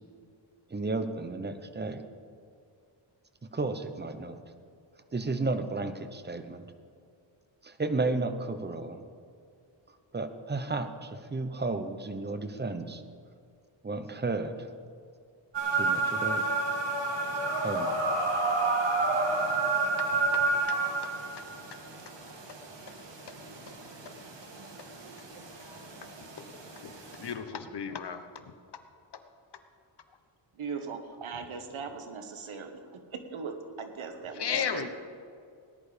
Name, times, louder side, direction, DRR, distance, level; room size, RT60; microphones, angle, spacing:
voice 1, 0.7-2.0 3.5-4.4 5.1-6.6 7.6-9.0 10.1-13.0 13.8-14.7 15.7-16.5 17.6-17.9, right 3 dB, 20° right, 9 dB, 1.0 m, -33 dB
sound 1, 15.5-27.3, right 3 dB, 65° right, 2.4 m, -30 dB
voice 2, 27.1-28.2 34.3-34.9, left 7 dB, 55° left, 9 dB, 1.1 m, -33 dB
voice 3, 30.6-34.9, right 5 dB, 85° right, 7 dB, 1.5 m, -40 dB
18.5 x 10.5 x 5.2 m, 2.4 s
wide cardioid pair, 110°, 47 cm